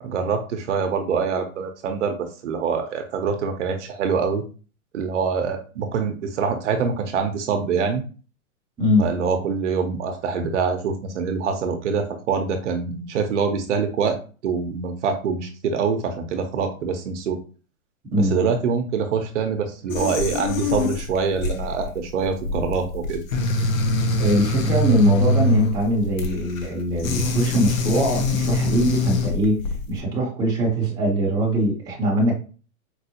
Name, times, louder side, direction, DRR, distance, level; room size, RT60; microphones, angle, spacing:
voice 1, 0.0-4.4 4.9-8.0 9.0-14.2 14.4-17.4 18.2-23.2, right 5 dB, 55° right, 5 dB, 0.7 m, -25 dB
sound 1, 19.9-30.0, left 2 dB, 65° left, 0.9 m, -24 dB
voice 2, 24.2-29.6 29.9-32.3, equal, 10° right, -4 dB, 0.7 m, -22 dB
4.5 x 2.0 x 2.8 m, 0.37 s
hypercardioid pair, 140°, 44 cm